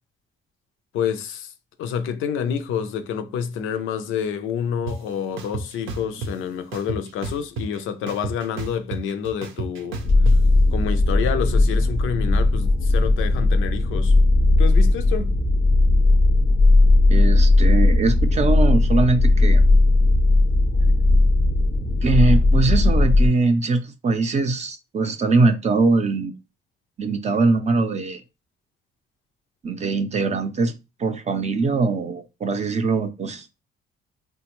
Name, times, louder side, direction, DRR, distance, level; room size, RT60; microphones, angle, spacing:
voice 1, 0.9-1.5 1.8-10.0 10.7-14.1 14.6-15.3, left 7 dB, 85° left, 0.5 m, -28 dB
sound 1, 4.9-5.0 5.4-6.3 6.7-7.8 8.1-10.4, right 3 dB, 85° right, 0.6 m, -31 dB
sound 2, 10.0-23.3, left 2 dB, 20° left, 0.4 m, -17 dB
voice 2, 17.1-19.7 22.0-26.4 27.0-28.2 29.6-33.5, right 3 dB, 35° right, 0.5 m, -22 dB
3.4 x 2.2 x 2.9 m
cardioid pair, 90°, 20 cm